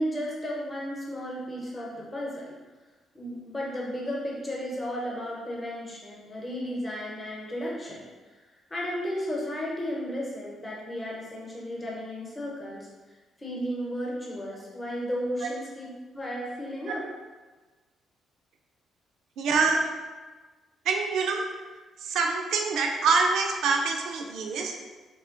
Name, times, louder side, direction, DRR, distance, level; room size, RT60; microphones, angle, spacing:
voice 1, 0.0-2.6 3.1-8.0 8.7-12.9 13.4-17.0, equal, 20° left, -4 dB, 0.9 m, -34 dB
voice 2, 19.4-19.8 20.9-21.4 22.0-24.7, right 4 dB, 75° right, 2 dB, 0.4 m, -25 dB
2.9 x 2.1 x 3.7 m, 1.3 s
cardioid pair, 90°, 0 cm